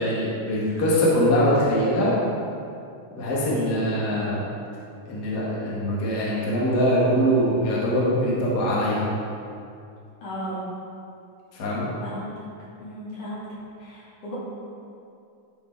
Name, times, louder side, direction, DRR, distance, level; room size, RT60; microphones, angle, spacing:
voice 1, 0.0-2.1 3.1-4.4 5.1-9.0 11.6-11.9, equal, 40° left, -7 dB, 1.6 m, -22 dB
voice 2, 3.4-3.7 10.2-10.6 11.7-12.2 12.8-13.5 13.8-14.4, equal, 65° left, -9 dB, 3.9 m, -36 dB
12.0 x 5.1 x 4.6 m, 2.5 s
omnidirectional pair, 3.8 m